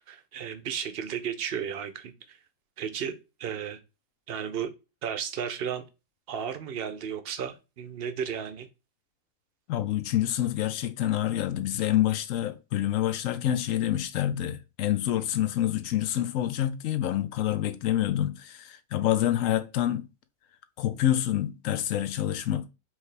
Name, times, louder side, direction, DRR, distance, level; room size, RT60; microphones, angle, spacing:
voice 1, 0.1-2.4 2.8-3.8 4.3-4.7 5.0-5.9 6.3-8.7, right 8 dB, 60° right, 0.7 m, -34 dB
voice 2, 9.7-20.0 20.8-22.7, left 12 dB, 70° left, 0.9 m, -27 dB
4.7 x 3.2 x 3.2 m
omnidirectional pair, 1.5 m